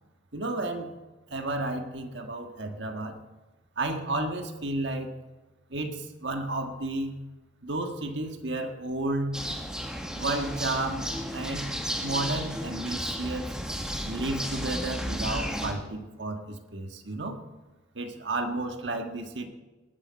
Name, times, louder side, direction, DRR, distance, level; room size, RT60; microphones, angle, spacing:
voice 1, 0.3-0.9 1.3-3.2 3.8-5.1 5.7-7.2 7.6-9.4 10.2-11.1 11.3-13.5 14.0-17.4 17.9-19.5, right 2 dB, 70° right, 5 dB, 1.5 m, -32 dB
sound 1, 9.3-15.7, equal, 5° right, 1.6 m, -33 dB
19.5 x 7.9 x 5.7 m, 1.2 s
head